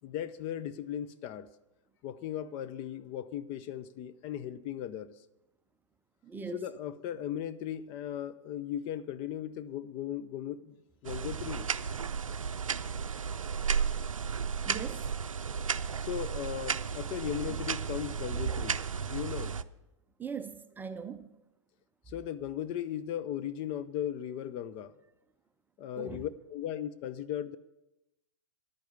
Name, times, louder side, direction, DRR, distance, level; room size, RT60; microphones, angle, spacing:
voice 1, 0.0-1.5 2.0-5.2 6.5-10.8 11.0-11.7 16.0-19.6 22.1-24.9 25.8-27.6, left 10 dB, 35° left, 0.5 m, -37 dB
voice 2, 6.2-6.6 14.7-15.1 20.2-21.3 26.0-26.3, right 6 dB, 10° right, 0.6 m, -40 dB
sound 1, 11.0-19.6, right 6 dB, 85° right, 0.5 m, -33 dB
10.5 x 9.1 x 7.0 m
figure-of-eight pair, 110°, 17 cm